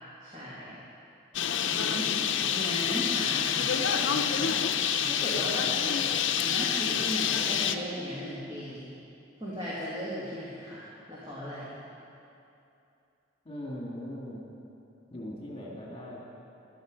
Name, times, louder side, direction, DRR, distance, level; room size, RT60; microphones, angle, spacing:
voice 1, 0.2-0.8 1.6-2.1 2.5-5.7 6.4-8.9 9.4-11.8, equal, 25° right, -9 dB, 2.2 m, -37 dB
Bird, 1.3-7.7, left 8 dB, 75° left, 0.6 m, -27 dB
voice 2, 13.5-14.4 15.1-16.2, equal, 30° left, -3 dB, 1.9 m, -40 dB
14.5 x 11.0 x 5.2 m, 2.7 s
head